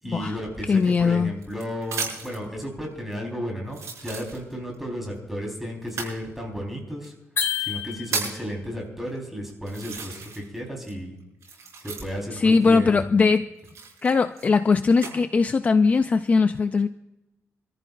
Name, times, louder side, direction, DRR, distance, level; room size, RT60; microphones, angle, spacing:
voice 1, 0.0-7.1 7.6-11.2 11.8-13.0, equal, 5° right, 0 dB, 4.1 m, -33 dB
voice 2, 0.7-1.4 12.3-13.5 14.0-16.9, left 4 dB, 30° left, 10 dB, 0.4 m, -20 dB
sound 1, 0.8-2.4 3.1-3.2 3.7-4.8 5.8-6.2 7.0-7.1 7.7-8.5 9.2-9.3 9.7-10.6 10.8-12.4 13.6-15.1 15.8-16.3, right 5 dB, 75° right, 6.5 m, -34 dB
sound 2, 7.4-8.5, left 7 dB, 50° left, 1.9 m, -29 dB
26.5 x 14.0 x 2.5 m, 0.95 s
wide cardioid pair, 155°, 5 cm